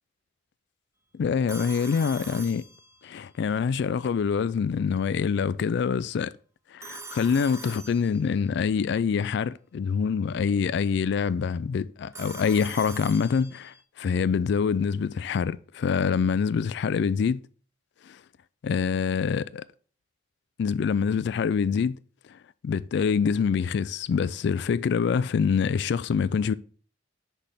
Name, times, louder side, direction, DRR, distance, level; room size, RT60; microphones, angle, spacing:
voice 1, 1.1-2.6 3.0-6.3 6.7-17.4 18.6-19.6 20.6-22.0 22.3-22.4 22.6-26.5, left 6 dB, 60° left, 0.3 m, -25 dB
Telephone, 1.5-3.3 6.8-8.5 12.1-13.8, right 3 dB, 15° right, 0.4 m, -43 dB
6.2 x 3.4 x 5.6 m
head